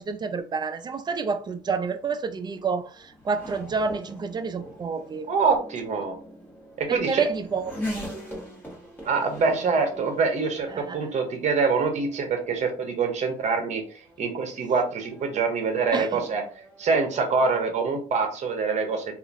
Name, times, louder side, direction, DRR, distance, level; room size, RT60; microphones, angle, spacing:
voice 1, 0.0-2.9 3.3-5.3 6.9-7.7 10.7-11.0 15.9-16.2, right 5 dB, 25° right, 0.3 m, -28 dB
Race car auto racing / Accelerating revving vroom, 1.4-17.6, equal, 10° left, 1.4 m, -42 dB
voice 2, 5.3-6.1 6.8-7.3 9.0-13.8 14.2-16.4 16.8-19.0, right 4 dB, 45° right, 0.8 m, -25 dB
2.9 x 2.4 x 2.5 m
cardioid pair, 110°, 17 cm